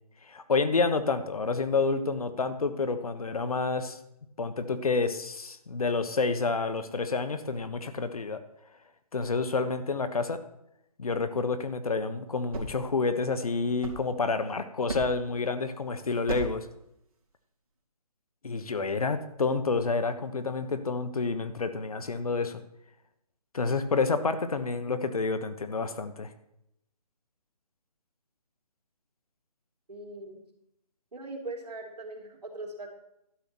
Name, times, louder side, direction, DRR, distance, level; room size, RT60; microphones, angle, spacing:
voice 1, 0.2-4.0 4.4-8.4 9.1-10.4 11.0-16.7 18.4-22.6 23.5-26.3, left 4 dB, 65° left, 10 dB, 1.2 m, -29 dB
sound 1, 12.2-14.5 14.9-15.4 16.3-16.7, right 2 dB, 65° right, 3.0 m, -38 dB
voice 2, 29.9-30.4 31.1-32.9, right 2 dB, 80° right, 1 dB, 3.1 m, -40 dB
11.5 x 6.8 x 6.1 m, 0.81 s
hypercardioid pair, 170°, 20 cm